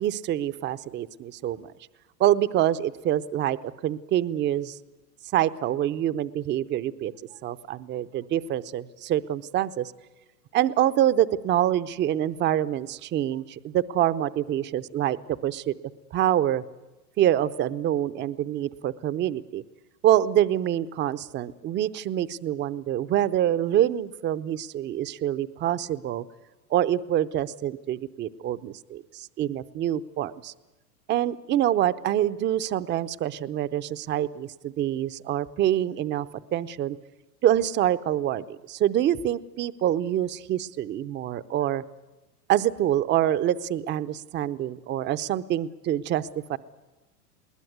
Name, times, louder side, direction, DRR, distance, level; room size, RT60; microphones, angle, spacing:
voice 1, 0.0-1.7 2.2-3.6 3.8-4.8 5.3-7.1 7.4-9.9 10.5-15.2 15.4-15.7 16.1-16.6 17.2-19.6 20.0-26.2 26.7-30.5 31.1-37.0 37.4-41.8 42.5-46.6, right 12 dB, 25° right, 14 dB, 0.7 m, -26 dB
21.0 x 19.5 x 9.5 m, 1.1 s
hypercardioid pair, 110°, 46 cm